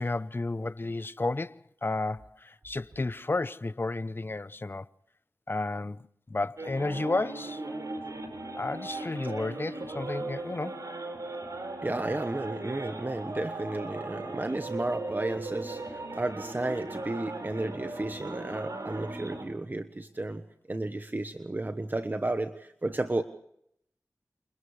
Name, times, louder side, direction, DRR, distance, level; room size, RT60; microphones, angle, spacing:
voice 1, 0.0-4.9 5.5-7.6 8.6-10.8, left 2 dB, 35° left, 0.7 m, -32 dB
sound 1, 6.6-19.4, right 2 dB, 70° right, 4.9 m, -38 dB
voice 2, 11.8-23.2, right 2 dB, 30° right, 1.1 m, -33 dB
29.0 x 28.5 x 3.3 m
wide cardioid pair, 75°, 6 cm